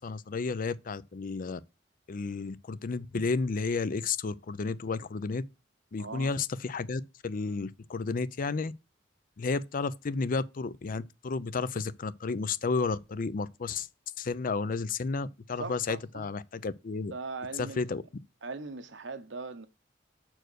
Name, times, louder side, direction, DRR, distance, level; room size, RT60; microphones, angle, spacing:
voice 1, 0.0-1.6 2.1-5.4 5.9-8.7 9.4-13.9 14.2-17.1 17.6-18.0, left 4 dB, 45° left, 0.5 m, -32 dB
voice 2, 6.0-6.3 15.6-16.3 17.1-17.8 18.4-19.7, right 3 dB, 75° right, 1.0 m, -39 dB
6.5 x 4.5 x 6.2 m
head